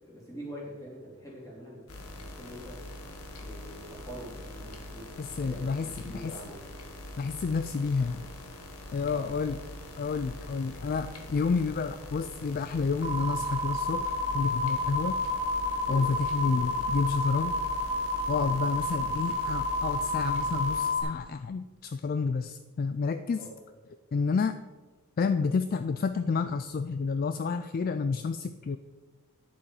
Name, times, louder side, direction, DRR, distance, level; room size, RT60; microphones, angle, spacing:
voice 1, 0.0-2.8 3.4-5.0 5.4-6.6 9.1-9.4 15.8-16.1 18.4-18.5 23.4-23.5, equal, 15° left, -5 dB, 3.2 m, -44 dB
sound 1, 1.9-20.9, left 1 dB, 85° left, 1.3 m, -44 dB
voice 2, 5.2-6.4 7.2-8.3 8.9-9.6 10.0-15.2 15.9-17.6 18.3-23.5 24.1-24.6 25.2-28.8, left 4 dB, 40° left, 10 dB, 0.3 m, -30 dB
sound 2, 13.0-21.0, left 2 dB, 60° left, 1.9 m, -30 dB
10.0 x 7.1 x 4.8 m, 1.3 s
head